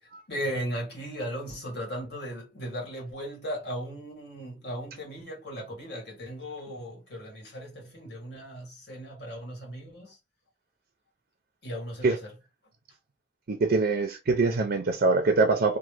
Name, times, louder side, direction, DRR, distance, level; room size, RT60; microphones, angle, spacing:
voice 1, 0.0-10.2 11.6-12.3, equal, 65° left, 1.6 m, -37 dB
voice 2, 13.5-15.8, right 3 dB, 55° right, 0.4 m, -24 dB
3.0 x 2.1 x 3.2 m
head